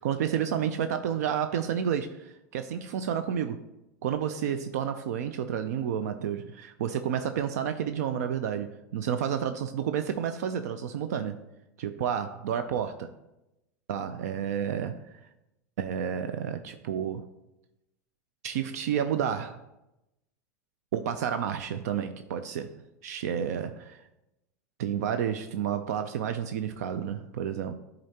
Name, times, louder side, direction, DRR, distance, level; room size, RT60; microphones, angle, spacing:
voice 1, 0.0-3.6 4.0-11.4 11.8-13.1 13.9-15.0 15.8-17.3 18.4-19.6 20.9-22.7 23.0-24.0 24.8-27.7, right 8 dB, 75° right, 9 dB, 0.4 m, -30 dB
10.5 x 3.9 x 2.8 m, 0.92 s
hypercardioid pair, 105°, 9 cm